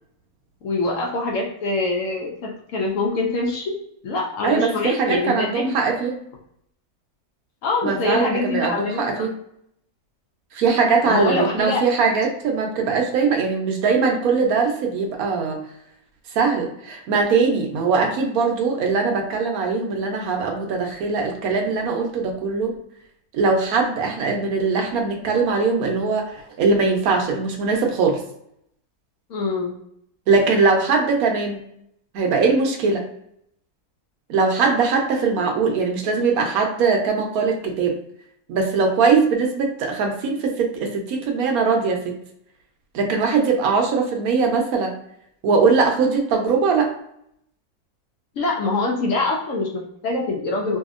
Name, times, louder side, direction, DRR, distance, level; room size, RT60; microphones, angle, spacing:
voice 1, 0.6-3.8 4.0-5.8 7.6-9.3 11.1-11.8 29.3-29.8 48.4-50.8, left 3 dB, 65° left, -1 dB, 0.9 m, -24 dB
voice 2, 4.4-6.2 7.8-9.3 10.5-15.6 16.3-22.7 23.3-28.2 30.3-31.7 32.1-33.0 34.3-37.9 38.5-42.1 42.9-44.9 45.4-46.9, right 4 dB, 75° right, 2 dB, 1.0 m, -21 dB
2.7 x 2.7 x 2.4 m, 0.73 s
omnidirectional pair, 1.6 m